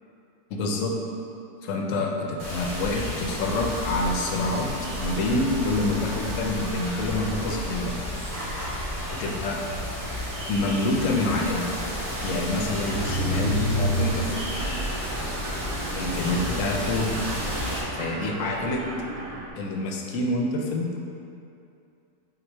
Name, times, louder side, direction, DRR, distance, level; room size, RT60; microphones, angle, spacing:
voice 1, 0.5-1.0 1.6-7.9 9.1-9.6 10.5-11.7 12.2-14.5 15.9-17.1 17.9-18.9 19.6-21.0, left 2 dB, 75° left, 1 dB, 0.9 m, -27 dB
sound 1, 2.4-17.8, equal, 40° right, 1.4 m, -32 dB
Mechanisms, 12.8-19.5, right 1 dB, 80° right, 1.0 m, -31 dB
3.8 x 3.0 x 4.4 m, 2.6 s
omnidirectional pair, 1.4 m